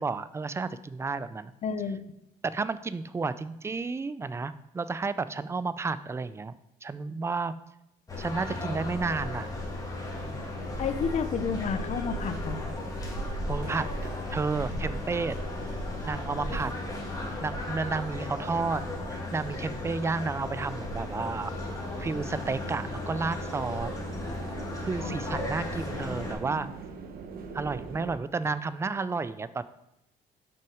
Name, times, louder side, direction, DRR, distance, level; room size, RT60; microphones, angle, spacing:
voice 1, 0.0-1.5 2.5-6.5 6.8-7.5 8.2-9.5 13.5-13.9 14.3-15.4 16.0-16.7 17.4-18.8 19.1-21.5 22.0-23.9 24.8-26.7 27.5-29.6, right 4 dB, 15° right, 15 dB, 0.4 m, -31 dB
voice 2, 1.6-2.0 10.8-12.6 16.5-16.7 25.0-25.2, left 6 dB, 45° left, 10 dB, 0.7 m, -31 dB
sound 1, 8.1-26.3, left 1 dB, 20° left, 2.0 m, -35 dB
sound 2, 12.4-14.7 15.2-15.3 15.8-28.2, right 4 dB, 60° right, 1.0 m, -44 dB
6.3 x 5.7 x 4.9 m, 0.84 s
cardioid pair, 110°, 17 cm